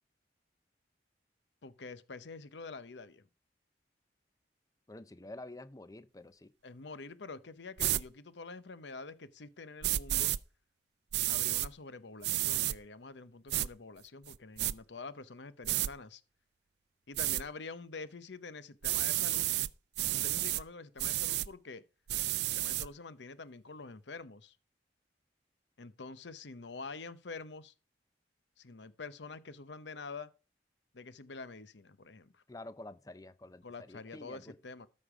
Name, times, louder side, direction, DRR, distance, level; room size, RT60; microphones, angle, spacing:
voice 1, 1.6-3.2 6.6-10.3 11.3-16.2 17.1-19.5 20.1-21.8 22.5-24.6 25.8-27.7 28.6-30.3 30.9-32.4 33.6-34.9, left 4 dB, 80° left, 0.8 m, -47 dB
voice 2, 4.9-6.5 32.5-34.6, left 2 dB, 20° left, 0.5 m, -49 dB
sound 1, 7.8-8.0 9.8-10.4 11.1-11.7 12.2-12.8 13.5-13.7 14.3-14.7 15.6-15.9 17.2-17.4 18.8-19.7 20.0-20.6 21.0-21.5 22.1-22.9, right 15 dB, 65° right, 0.4 m, -31 dB
13.0 x 5.3 x 4.9 m
head